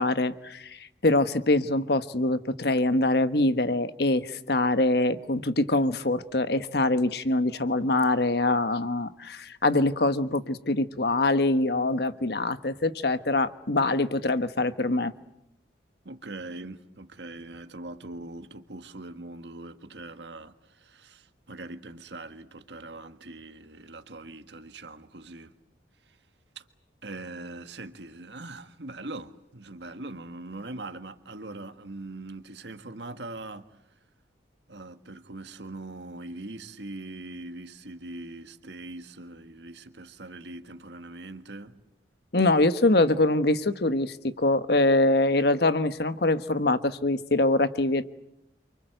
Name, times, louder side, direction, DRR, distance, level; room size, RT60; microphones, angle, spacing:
voice 1, 0.0-15.1 42.3-48.1, left 2 dB, 60° left, 1.3 m, -24 dB
voice 2, 16.0-25.5 26.5-26.6 27.0-33.6 34.7-41.7, right 2 dB, 75° right, 1.6 m, -41 dB
29.0 x 24.5 x 8.0 m
head